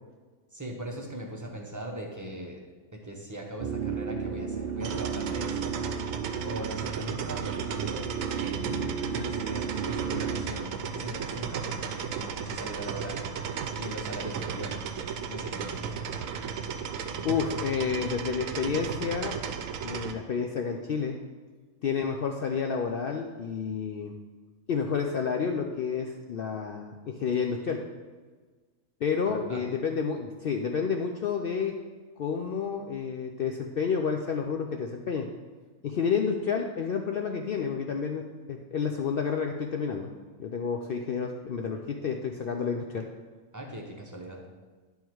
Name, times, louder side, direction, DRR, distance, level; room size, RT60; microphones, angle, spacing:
voice 1, 0.5-2.6 2.9-5.8 6.4-8.9 9.1-13.3 13.7-14.9 15.3-15.9 29.3-29.6 43.5-44.4, right 1 dB, 15° right, 0 dB, 0.7 m, -39 dB
sound 1, 3.6-10.4, right 6 dB, 60° right, 0.5 m, -34 dB
sound 2, 4.8-20.1, right 6 dB, 75° right, 1.0 m, -35 dB
voice 2, 17.2-19.4 19.8-21.2 21.8-24.1 24.7-27.8 29.0-31.7 32.2-35.3 35.8-38.2 38.5-40.1 40.4-43.1, left 6 dB, 70° left, 3 dB, 0.5 m, -30 dB
10.5 x 3.6 x 4.6 m, 1.4 s
omnidirectional pair, 1.4 m